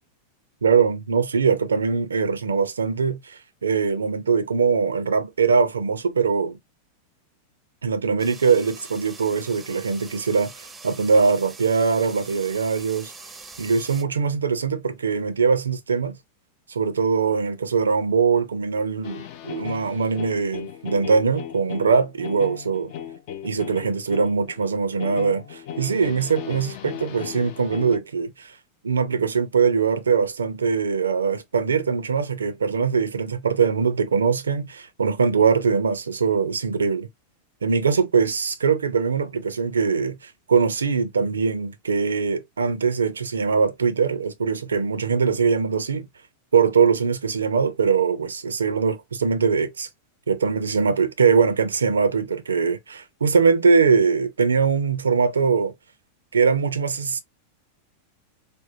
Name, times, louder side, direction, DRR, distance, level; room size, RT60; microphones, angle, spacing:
voice 1, 0.6-6.6 7.8-10.5 10.8-13.1 13.6-16.2 16.7-22.9 23.4-28.5 28.8-37.1 37.6-46.1 46.5-49.9 50.3-55.7 56.3-57.2, right 5 dB, 70° right, 0.5 m, -22 dB
sound 1, 8.2-14.0, right 4 dB, 15° right, 0.5 m, -43 dB
sound 2, 19.0-28.0, left 9 dB, 45° left, 0.5 m, -37 dB
3.5 x 2.1 x 2.6 m
figure-of-eight pair, 90°, 0 cm